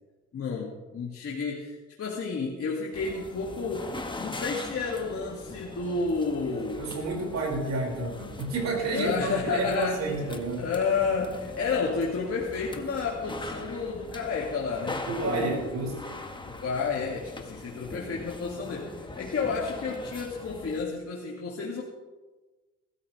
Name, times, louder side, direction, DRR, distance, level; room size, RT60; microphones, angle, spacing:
voice 1, 0.3-3.9 4.2-6.8 8.9-15.7 16.5-21.8, left 4 dB, 50° left, -3 dB, 2.4 m, -31 dB
sound 1, 2.9-20.9, left 2 dB, 15° left, 1.6 m, -41 dB
voice 2, 6.8-10.7 15.1-16.1, right 2 dB, 65° right, 0 dB, 5.6 m, -30 dB
19.5 x 13.5 x 3.4 m, 1.2 s
cardioid pair, 90°, 30 cm